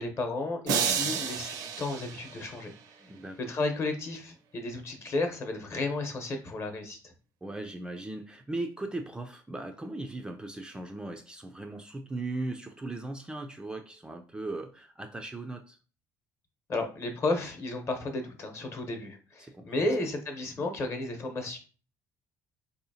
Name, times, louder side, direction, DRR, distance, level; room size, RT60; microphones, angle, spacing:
voice 1, 0.0-2.7 3.5-7.1 16.7-21.6, left 2 dB, 40° left, 0.9 m, -33 dB
sound 1, 0.7-2.9, right 7 dB, 70° right, 0.5 m, -31 dB
voice 2, 0.8-1.2 3.0-3.4 7.4-15.8 19.4-20.1 20.6-20.7, right 2 dB, 10° right, 0.3 m, -38 dB
4.0 x 2.8 x 2.7 m
cardioid pair, 130°, 7 cm